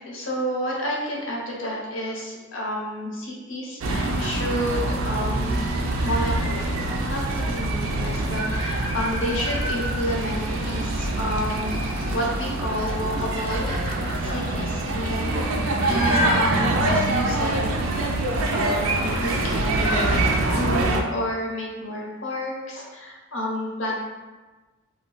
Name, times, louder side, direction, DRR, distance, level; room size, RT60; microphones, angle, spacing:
voice 1, 0.0-5.7 6.0-11.8 12.1-13.8 14.1-17.8 18.5-20.1 20.5-24.0, equal, 70° left, -2 dB, 0.7 m, -30 dB
sound 1, 3.8-21.0, right 2 dB, 90° right, 0.4 m, -25 dB
sound 2, 5.5-7.0 8.0-10.0 10.3-12.3 12.8-17.1 19.1-19.5 19.7-20.1, left 1 dB, 45° right, 0.8 m, -33 dB
2.2 x 2.2 x 3.7 m, 1.2 s
head